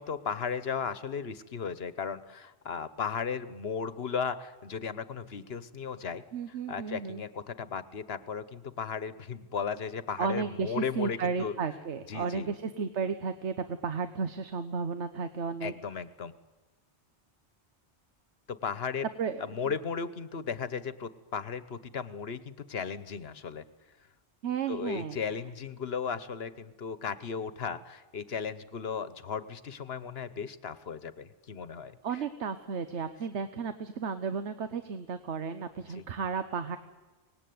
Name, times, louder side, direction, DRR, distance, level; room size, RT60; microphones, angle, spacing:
voice 1, 0.0-11.6 12.1-12.5 15.6-16.3 18.5-19.1 19.4-23.6 24.7-32.2 35.9-36.1, left 6 dB, 65° left, 14 dB, 1.3 m, -36 dB
voice 2, 6.3-7.2 10.2-15.7 19.2-19.4 24.4-25.2 32.0-36.8, right 5 dB, 85° right, 10 dB, 1.3 m, -33 dB
24.5 x 19.5 x 9.4 m, 1.2 s
omnidirectional pair, 1.1 m